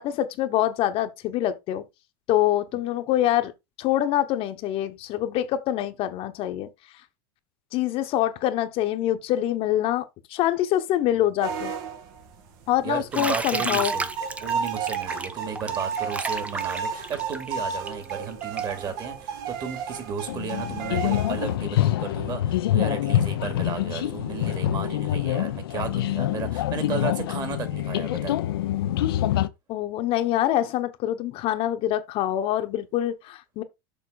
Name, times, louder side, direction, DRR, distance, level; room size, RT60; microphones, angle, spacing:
voice 1, 0.0-1.8 2.3-3.5 3.8-6.7 7.7-11.7 12.7-13.9 29.7-33.6, left 12 dB, 50° left, 1.1 m, -25 dB
sound 1, 11.4-12.3 12.6-21.6, right 6 dB, 65° right, 1.9 m, -32 dB
voice 2, 12.8-14.1 14.4-28.4, right 6 dB, 35° right, 2.6 m, -34 dB
Bathtub (filling or washing), 13.1-18.8, right 3 dB, 10° right, 0.8 m, -32 dB
sound 2, 20.3-29.5, left 13 dB, 85° left, 0.8 m, -26 dB
7.1 x 5.6 x 4.0 m
supercardioid pair, 115°, 12 cm